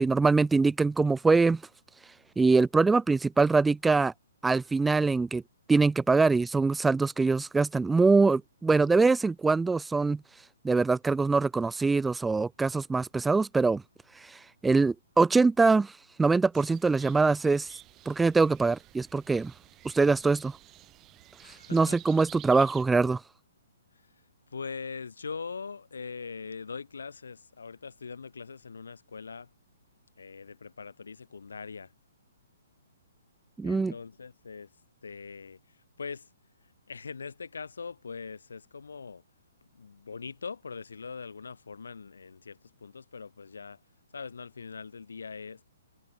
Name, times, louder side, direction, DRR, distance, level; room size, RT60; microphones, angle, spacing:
voice 1, 0.0-1.6 2.4-4.1 4.4-5.4 5.7-10.2 10.6-13.8 14.2-15.9 16.2-17.7 18.1-19.5 19.8-20.6 21.4-23.2 33.6-33.9, right 4 dB, 5° right, 0.3 m, -23 dB
sound 1, 16.5-22.8, right 15 dB, 25° right, 1.2 m, -52 dB
voice 2, 21.4-22.0 24.0-24.1 24.5-29.5 30.2-31.9 33.6-34.7 35.0-36.3 36.9-39.2 39.7-43.8 44.1-45.6, left 5 dB, 70° left, 5.3 m, -42 dB
figure-of-eight pair, 125°, 0 cm